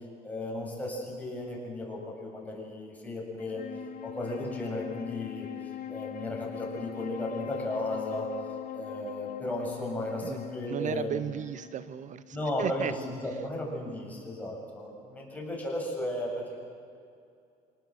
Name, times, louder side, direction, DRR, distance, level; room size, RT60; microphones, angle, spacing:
voice 1, 0.2-3.6 4.0-5.5 5.9-8.3 8.7-11.2 12.3-16.6, left 1 dB, 10° left, -3 dB, 7.2 m, -35 dB
Wind instrument woodwind instrument, 3.4-12.9, left 11 dB, 55° left, 1.4 m, -42 dB
voice 2, 10.7-12.9, right 10 dB, 50° right, 15 dB, 0.5 m, -34 dB
25.5 x 19.0 x 7.7 m, 2.5 s
cardioid pair, 110°, 17 cm